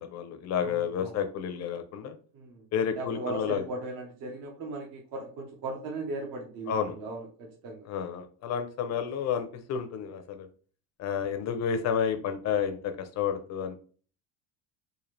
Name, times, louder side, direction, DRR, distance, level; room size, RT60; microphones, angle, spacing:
voice 1, 0.0-2.1 2.7-3.6 6.7-6.9 7.9-10.5 11.0-13.7, left 7 dB, 40° left, 7 dB, 0.5 m, -30 dB
voice 2, 0.6-1.2 2.3-2.7 2.9-7.9, right 2 dB, 50° right, 0 dB, 0.9 m, -38 dB
3.9 x 2.5 x 3.2 m, 0.41 s
cardioid pair, 160°, 43 cm